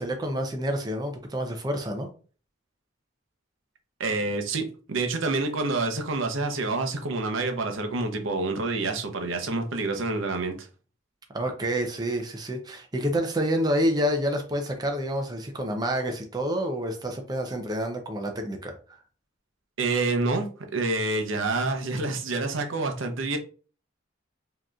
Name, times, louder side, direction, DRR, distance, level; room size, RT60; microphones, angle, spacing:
voice 1, 0.0-2.1 11.3-18.7, equal, 20° right, 0.5 m, -28 dB
voice 2, 4.0-10.7 19.8-23.4, right 3 dB, 70° right, 0.7 m, -27 dB
4.9 x 2.9 x 2.3 m
head